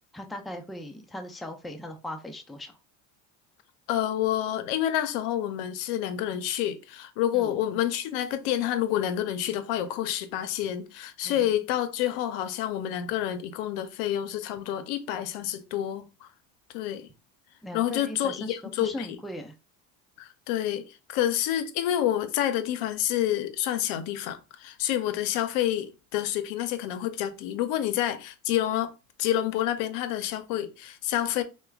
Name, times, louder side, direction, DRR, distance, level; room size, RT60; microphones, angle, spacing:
voice 1, 0.1-2.8 7.3-7.5 11.2-11.6 17.6-19.5, left 1 dB, ahead, 0.4 m, -39 dB
voice 2, 3.9-16.3 16.7-17.1 17.7-19.1 20.2-28.9 29.2-31.4, left 11 dB, 80° left, 0.6 m, -28 dB
4.4 x 2.2 x 2.3 m
supercardioid pair, 90°, 40 cm